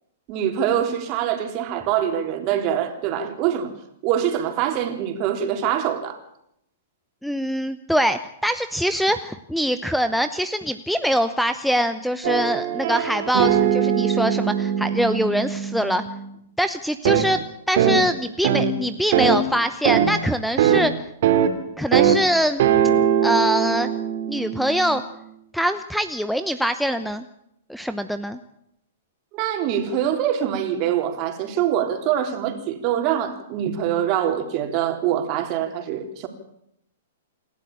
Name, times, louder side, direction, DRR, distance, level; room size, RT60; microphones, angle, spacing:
voice 1, 0.3-3.7 4.0-6.2 29.3-36.3, right 10 dB, 40° right, 3.6 m, -24 dB
voice 2, 7.2-16.0 16.6-20.9 21.8-22.6 23.2-23.9 24.3-25.0 25.5-27.2 27.7-28.4, equal, ahead, 0.8 m, -23 dB
sound 1, 12.2-16.2 17.0-17.2 17.8-18.0 18.4-18.7 19.1-19.4 19.8-20.1 20.6-20.8 21.2-21.5 21.9-22.2 22.6-25.0, right 9 dB, 60° right, 3.0 m, -21 dB
27.5 x 12.0 x 8.8 m
hypercardioid pair, 130°, 0 cm